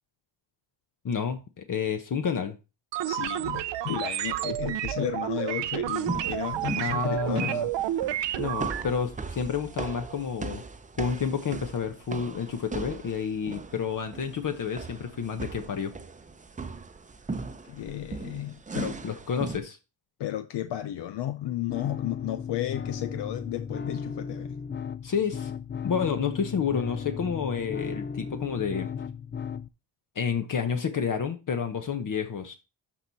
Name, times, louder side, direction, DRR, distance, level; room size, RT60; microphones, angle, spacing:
voice 1, 1.0-2.6 6.8-7.7 8.4-10.6 11.0-15.9 19.0-19.8 25.0-25.5 25.8-28.9 30.1-32.5, left 6 dB, 45° left, 1.1 m, -30 dB
sound 1, 2.9-8.8, right 12 dB, 75° right, 0.8 m, -30 dB
voice 2, 3.0-7.6 17.7-19.0 20.2-24.6, left 13 dB, 70° left, 0.7 m, -33 dB
sound 2, 6.1-19.6, right 4 dB, 15° right, 0.8 m, -38 dB
sound 3, 21.7-29.7, left 6 dB, 25° left, 0.5 m, -36 dB
12.5 x 4.8 x 4.2 m
cardioid pair, 100°, 43 cm